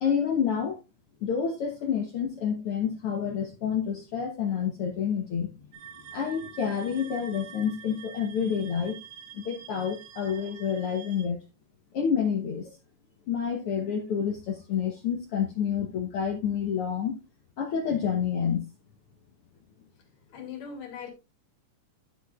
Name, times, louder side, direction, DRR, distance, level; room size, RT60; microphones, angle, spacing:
voice 1, 0.0-0.8 1.2-5.5 6.1-8.9 9.3-11.4 11.9-12.7 13.3-17.2 17.6-18.6, left 7 dB, 65° left, 1.4 m, -28 dB
sound 1, 5.7-11.3, right 9 dB, 85° right, 2.3 m, -47 dB
voice 2, 20.3-21.1, left 6 dB, 85° left, 4.0 m, -39 dB
12.0 x 6.0 x 2.3 m
omnidirectional pair, 3.6 m